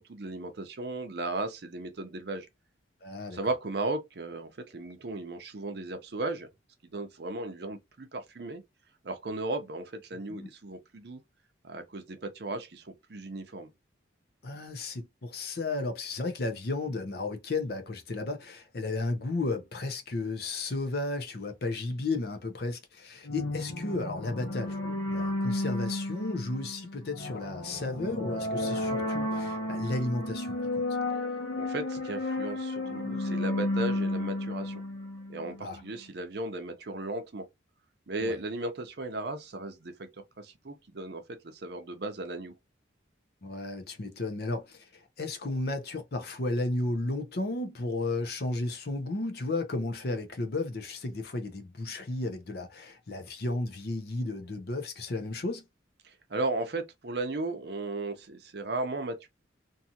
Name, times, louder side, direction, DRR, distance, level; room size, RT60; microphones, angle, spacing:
voice 1, 0.0-2.5 3.3-6.5 6.9-8.6 9.0-11.2 11.6-13.7 31.6-34.8 35.3-37.4 38.1-40.1 40.4-42.5 56.0-59.3, right 2 dB, 55° right, 0.6 m, -36 dB
voice 2, 3.0-3.4 10.3-10.5 14.4-30.8 35.6-35.8 38.2-38.4 43.4-55.6, left 2 dB, 55° left, 0.6 m, -33 dB
sound 1, 23.2-35.8, left 1 dB, 80° left, 0.9 m, -33 dB
2.6 x 2.4 x 2.7 m
head